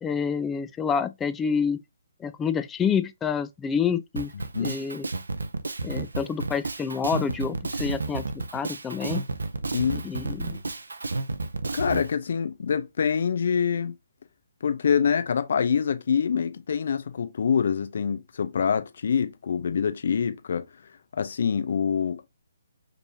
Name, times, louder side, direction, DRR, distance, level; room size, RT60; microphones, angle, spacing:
voice 1, 0.0-1.8 2.2-4.3 4.6-5.1 5.8-9.2 10.0-10.6, left 6 dB, 10° left, 0.3 m, -28 dB
Drum kit, 4.1-12.1, right 3 dB, 70° right, 0.6 m, -31 dB
voice 2, 11.7-13.9 14.6-20.7 21.1-22.2, left 7 dB, 55° left, 0.6 m, -25 dB
5.2 x 3.1 x 2.6 m
figure-of-eight pair, 135°, 0 cm